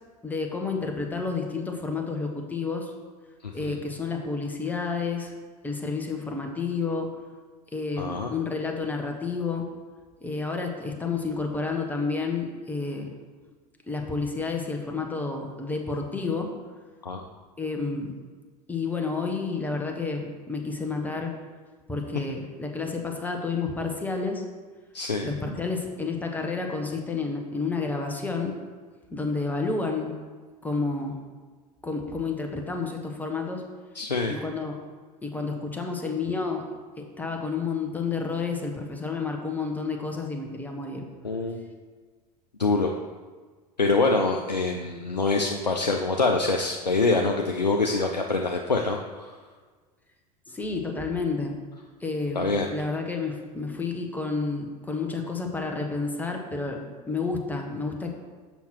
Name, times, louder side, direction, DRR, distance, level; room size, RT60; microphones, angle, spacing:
voice 1, 0.2-2.9 3.5-5.3 5.6-7.2 7.7-9.7 10.2-13.1 13.9-16.5 17.6-18.1 18.7-21.4 21.9-24.4 25.2-28.5 29.1-30.1 30.6-31.1 31.8-33.6 34.3-34.8 35.2-36.7 37.0-41.0 50.5-51.5 52.0-52.4 52.7-56.8 57.1-58.1, left 4 dB, 10° left, 2 dB, 1.1 m, -30 dB
voice 2, 3.4-3.8 8.0-8.3 17.0-17.2 24.9-25.3 33.9-34.3 41.2-41.6 42.6-42.9 43.8-49.4 52.4-52.7, left 3 dB, 90° left, 2 dB, 0.5 m, -25 dB
7.1 x 5.8 x 4.5 m, 1.5 s
figure-of-eight pair, 80°, 21 cm